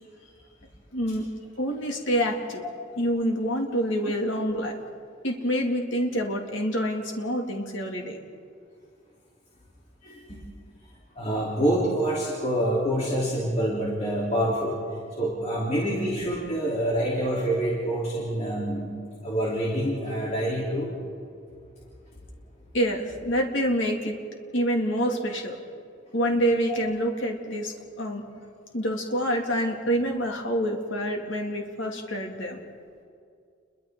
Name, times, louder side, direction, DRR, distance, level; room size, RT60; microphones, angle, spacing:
voice 1, 0.9-1.2 1.6-2.6 3.0-4.7 5.2-8.2 22.7-24.2 24.5-25.5 26.1-28.2 28.7-32.6, equal, 75° left, 1 dB, 2.5 m, -27 dB
voice 2, 10.0-10.4 11.2-14.7 15.1-21.0 25.0-25.2, right 1 dB, 35° left, -6 dB, 3.5 m, -27 dB
30.0 x 23.0 x 3.8 m, 2.3 s
head